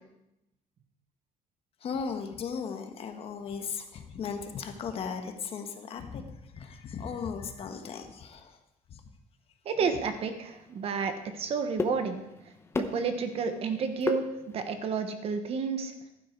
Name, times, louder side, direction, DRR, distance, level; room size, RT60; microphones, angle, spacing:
voice 1, 1.8-8.6 8.9-9.0, left 6 dB, 45° left, 6 dB, 1.5 m, -37 dB
voice 2, 9.6-12.2 12.7-14.3 14.5-15.9, right 5 dB, 45° right, 8 dB, 1.3 m, -30 dB
sound 1, 9.8-14.9, left 3 dB, 20° left, 0.9 m, -38 dB
15.0 x 11.5 x 4.7 m, 0.87 s
cardioid pair, 165°, 14 cm